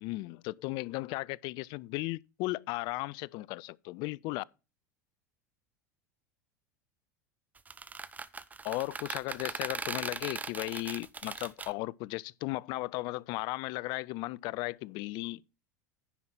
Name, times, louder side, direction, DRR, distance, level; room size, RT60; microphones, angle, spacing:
voice 1, 0.0-4.4 8.6-15.5, left 21 dB, 50° left, 0.4 m, -36 dB
sound 1, 7.6-11.7, right 4 dB, 15° right, 0.7 m, -39 dB
10.0 x 5.5 x 5.9 m
figure-of-eight pair, 80°, 9 cm